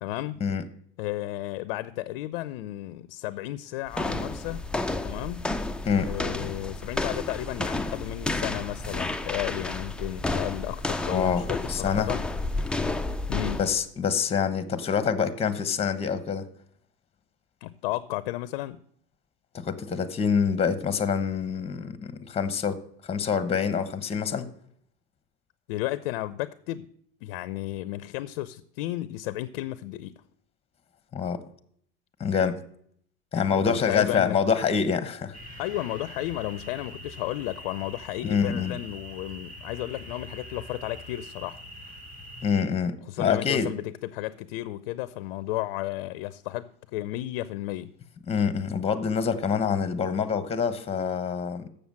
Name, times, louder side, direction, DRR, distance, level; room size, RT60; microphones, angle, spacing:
voice 1, 0.0-0.4 1.0-4.6 5.0-5.5 6.0-12.2 13.3-13.7 17.6-18.8 25.7-26.9 27.2-30.2 33.5-34.4 35.6-41.6 43.1-47.9, left 16 dB, 65° left, 0.6 m, -33 dB
sound 1, 3.9-13.8, left 2 dB, 5° left, 0.4 m, -31 dB
voice 2, 11.0-11.4 11.7-12.1 13.6-16.4 19.5-22.8 23.1-24.5 31.1-31.4 32.2-32.6 33.3-35.4 38.2-38.8 42.4-43.7 48.3-51.7, left 6 dB, 20° left, 1.0 m, -26 dB
sound 2, 35.3-42.6, equal, 25° right, 3.2 m, -44 dB
7.2 x 6.9 x 7.4 m
hypercardioid pair, 100°, 29 cm